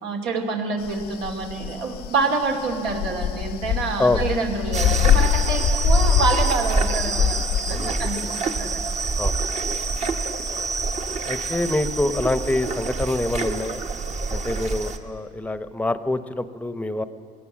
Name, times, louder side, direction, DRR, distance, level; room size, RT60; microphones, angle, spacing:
voice 1, 0.0-8.7, right 4 dB, 80° right, 2 dB, 2.7 m, -27 dB
sound 1, 0.8-9.3, left 11 dB, 70° left, 0.5 m, -24 dB
sound 2, 4.7-15.0, right 4 dB, 45° right, 1.3 m, -26 dB
voice 2, 7.7-8.1 9.2-9.4 11.3-13.8 14.3-17.0, left 2 dB, 10° left, 12 dB, 0.8 m, -25 dB
20.5 x 17.0 x 7.5 m, 2.8 s
cardioid pair, 110°, 17 cm